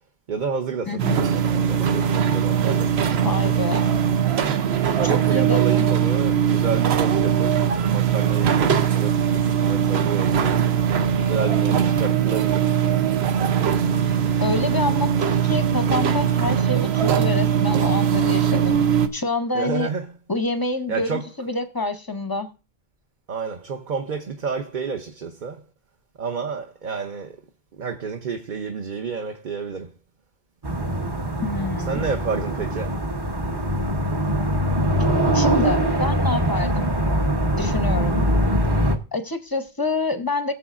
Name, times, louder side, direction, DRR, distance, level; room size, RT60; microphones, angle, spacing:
voice 1, 0.3-3.6 4.0-4.1 4.9-10.7 11.2-12.7 19.5-20.1 20.9-21.2 23.3-25.6 26.2-27.4 27.8-29.9 31.9-33.0, right 5 dB, 50° right, 0.9 m, -30 dB
voice 2, 0.9-1.3 3.2-4.0 5.0-5.9 14.4-18.8 19.1-19.9 20.3-22.5 31.4-32.1 35.3-36.9 37.6-38.3 39.1-40.5, left 3 dB, 25° left, 0.5 m, -27 dB
sound 1, 1.0-19.1, right 8 dB, 85° right, 1.0 m, -20 dB
sound 2, 30.6-39.0, equal, 25° right, 0.9 m, -22 dB
19.0 x 7.0 x 2.4 m
omnidirectional pair, 1.0 m